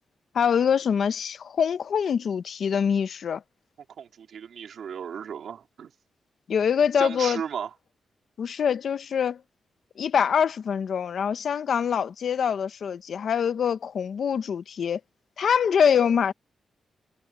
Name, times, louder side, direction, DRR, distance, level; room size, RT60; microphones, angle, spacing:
voice 1, 0.3-3.4 6.5-7.4 8.4-9.4 10.0-15.0 15.4-16.3, left 7 dB, 65° left, 1.0 m, -24 dB
voice 2, 4.0-5.9 7.0-7.7, right 7 dB, 75° right, 3.2 m, -35 dB
cardioid pair, 110°, 0 cm